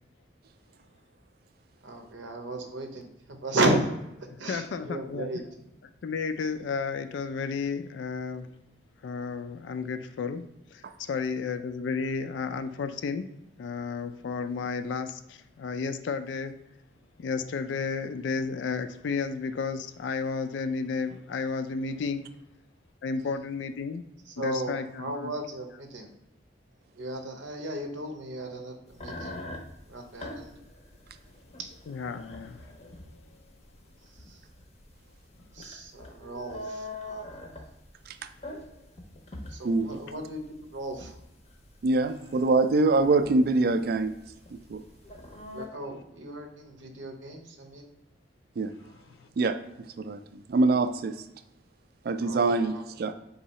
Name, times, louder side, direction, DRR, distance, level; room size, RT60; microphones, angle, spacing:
voice 1, 1.8-3.9 4.2-5.4 24.4-26.1 27.0-29.4 29.9-30.5 31.6-31.7 34.3-34.4 35.5-37.4 39.5-40.4 40.7-41.2 45.5-47.9 52.2-52.8, right 1 dB, 85° right, 4 dB, 0.7 m, -34 dB
voice 2, 4.3-5.3 6.0-8.5 9.0-13.3 13.6-16.7 17.2-22.3 23.0-24.0 24.4-25.3 31.9-32.7 35.6-35.7 49.2-49.3, left 5 dB, 80° left, 10 dB, 0.3 m, -32 dB
sound 1, 28.9-45.7, left 1 dB, 35° left, 0.6 m, -44 dB
voice 3, 41.8-44.1 44.7-44.8 48.6-48.7 49.4-49.6 50.0-51.1 52.1-53.1, right 3 dB, 55° right, 10 dB, 0.3 m, -24 dB
3.9 x 2.7 x 4.1 m, 0.87 s
head